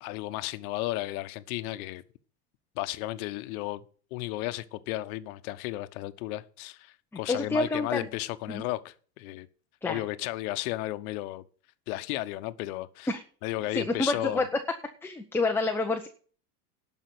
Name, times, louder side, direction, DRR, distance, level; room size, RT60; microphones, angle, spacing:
voice 1, 0.0-2.0 2.7-3.8 4.1-9.5 9.8-11.4 11.9-13.1 13.4-14.5, left 17 dB, 60° left, 1.1 m, -34 dB
voice 2, 7.3-8.0 8.5-8.6 9.8-10.0 13.1-13.2 13.7-14.5 15.0-16.1, left 3 dB, 5° left, 0.8 m, -28 dB
11.5 x 5.6 x 7.8 m
supercardioid pair, 130°, 47 cm